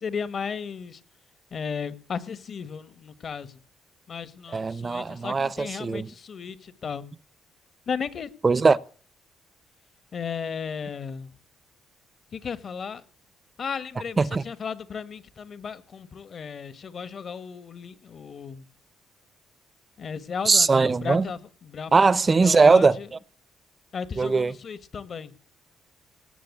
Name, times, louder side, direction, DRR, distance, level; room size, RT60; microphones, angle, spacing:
voice 1, 0.0-1.0 1.5-3.5 4.1-7.0 7.9-8.3 10.1-11.3 12.3-13.0 13.6-18.6 20.0-22.1 22.4-22.9 23.9-25.3, left 6 dB, 50° left, 1.6 m, -35 dB
voice 2, 4.5-6.1 8.4-8.8 14.2-14.4 20.4-21.3 21.9-23.2 24.2-24.6, right 4 dB, 30° right, 0.6 m, -20 dB
18.5 x 7.4 x 8.4 m
cardioid pair, 90°, 0 cm